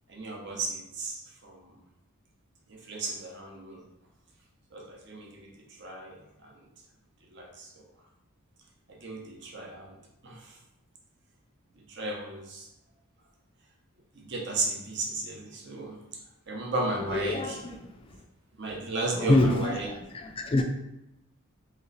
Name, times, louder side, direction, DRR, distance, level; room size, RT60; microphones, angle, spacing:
voice 1, 0.1-1.7 2.7-3.8 4.7-5.5 5.8-6.5 7.3-7.7 9.0-10.0 10.2-10.4 11.9-12.7 14.2-16.0 16.5-17.6 18.6-19.9, right 2 dB, 55° right, -1 dB, 0.8 m, -34 dB
voice 2, 17.1-17.7 18.1-18.2 19.2-20.6, left 2 dB, 25° left, 4 dB, 0.3 m, -26 dB
3.2 x 3.0 x 3.9 m, 0.88 s
head